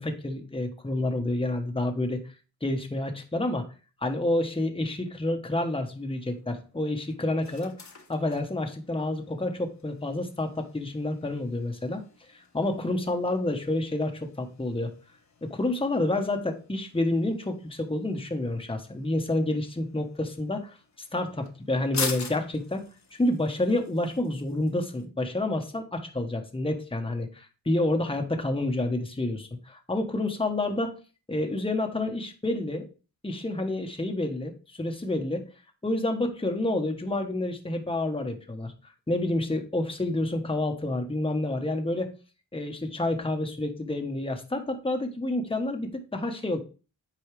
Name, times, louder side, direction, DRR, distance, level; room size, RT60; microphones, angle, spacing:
voice 1, 0.0-2.2 2.6-3.6 4.0-7.7 8.1-12.0 12.5-14.9 15.4-20.8 21.1-22.8 23.1-30.9 31.3-32.9 33.2-35.4 35.8-38.7 39.1-42.1 42.5-46.6, left 2 dB, 15° left, 4 dB, 1.2 m, -29 dB
sound 1, 5.5-25.1, left 4 dB, 45° left, 1.2 m, -44 dB
8.1 x 4.6 x 3.3 m, 0.34 s
cardioid pair, 65°, 37 cm